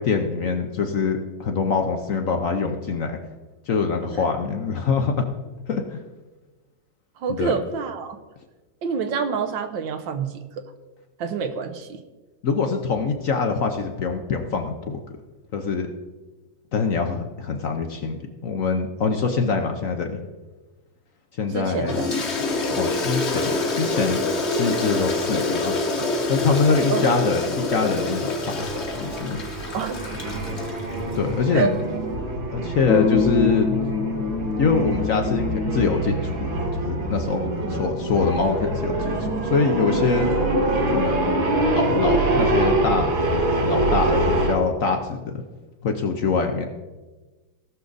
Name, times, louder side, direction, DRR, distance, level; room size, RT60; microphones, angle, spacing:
voice 1, 0.0-3.2 3.7-5.3 5.7-6.0 7.3-7.5 12.4-15.0 15.5-15.9 16.7-20.2 21.4-22.0 22.8-25.8 26.3-28.7 29.0-29.4 31.1-31.7 32.5-33.7 34.6-40.3 40.9-41.5 41.7-43.1 43.6-45.4 45.8-46.7, left 4 dB, 55° left, 4 dB, 1.0 m, -24 dB
voice 2, 7.2-8.2 8.8-10.4 11.2-12.0 21.5-22.1 22.4-22.8 26.9-27.1 29.7-30.1 31.5-31.7 37.6-37.7, right 6 dB, 75° right, 8 dB, 1.6 m, -27 dB
Toilet flush, 21.9-31.2, left 2 dB, 40° left, 1.2 m, -26 dB
sound 1, 28.6-44.5, right 1 dB, 55° right, 2.1 m, -25 dB
sound 2, 32.9-36.1, left 5 dB, 85° left, 1.5 m, -25 dB
17.5 x 6.4 x 4.0 m, 1.2 s
omnidirectional pair, 2.1 m